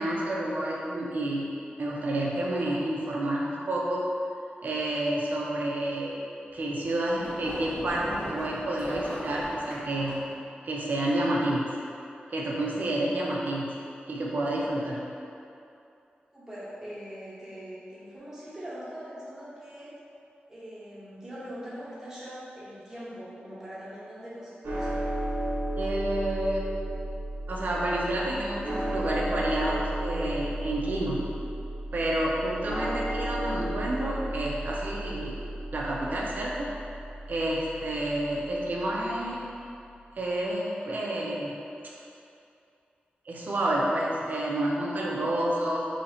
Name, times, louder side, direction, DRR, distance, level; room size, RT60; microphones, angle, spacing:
voice 1, 0.0-1.5 1.8-4.0 4.6-6.3 6.5-10.3 10.6-11.7 12.3-13.7 14.1-15.1 25.8-26.6 27.5-31.3 31.9-35.4 35.7-36.7 37.3-39.4 40.2-41.6 43.3-45.9, right 1 dB, 50° right, -4 dB, 0.5 m, -29 dB
sound 1, 6.6-10.3, equal, 50° left, 1.4 m, -38 dB
voice 2, 16.3-19.9 20.5-25.0, equal, 15° right, -11 dB, 1.0 m, -42 dB
sound 2, 24.6-38.9, right 1 dB, 80° right, 0.7 m, -34 dB
2.8 x 2.7 x 4.1 m, 2.6 s
wide cardioid pair, 155°, 4 cm